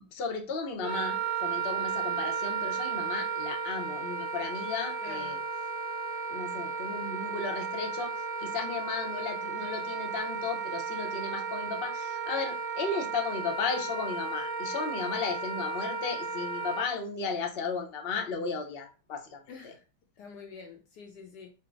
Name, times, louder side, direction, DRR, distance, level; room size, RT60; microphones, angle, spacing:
voice 1, 0.1-5.4 6.3-8.1 8.4-19.7, left 4 dB, 55° left, 3 dB, 0.6 m, -35 dB
Wind instrument woodwind instrument, 0.8-16.9, right 5 dB, 90° right, 1.9 m, -34 dB
voice 2, 5.0-5.4 19.5-19.8 20.2-21.5, left 5 dB, 70° left, 3 dB, 1.1 m, -47 dB
4.8 x 2.0 x 4.5 m, 0.35 s
omnidirectional pair, 2.1 m